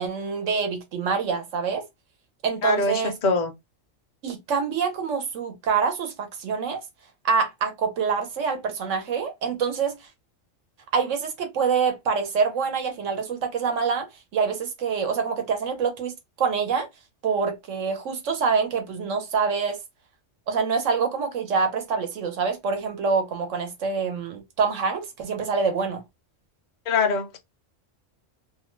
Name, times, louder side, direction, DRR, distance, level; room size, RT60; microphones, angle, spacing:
voice 1, 0.0-1.8 2.4-3.1 4.2-6.8 7.2-10.1 10.9-14.1 14.3-16.9 17.2-19.8 20.5-26.0, right 5 dB, 75° right, 1.2 m, -26 dB
voice 2, 2.6-3.5 26.9-27.4, left 4 dB, 50° left, 0.6 m, -23 dB
2.7 x 2.1 x 3.1 m
omnidirectional pair, 1.3 m